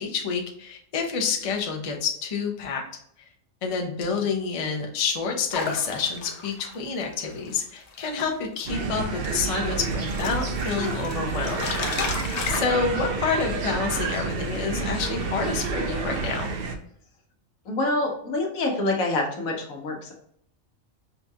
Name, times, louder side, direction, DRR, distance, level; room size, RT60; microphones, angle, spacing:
voice 1, 0.0-2.8 3.6-12.1 12.5-16.5, left 5 dB, 40° left, 2 dB, 0.4 m, -28 dB
sound 1, 5.5-8.3 8.6-8.8 9.3-12.6, left 4 dB, 60° left, 0.9 m, -33 dB
sound 2, 8.7-16.8, right 4 dB, 65° right, 0.6 m, -29 dB
voice 2, 17.6-20.1, left 2 dB, 80° left, 1 dB, 1.3 m, -26 dB
5.6 x 2.3 x 2.6 m, 0.69 s
omnidirectional pair, 1.4 m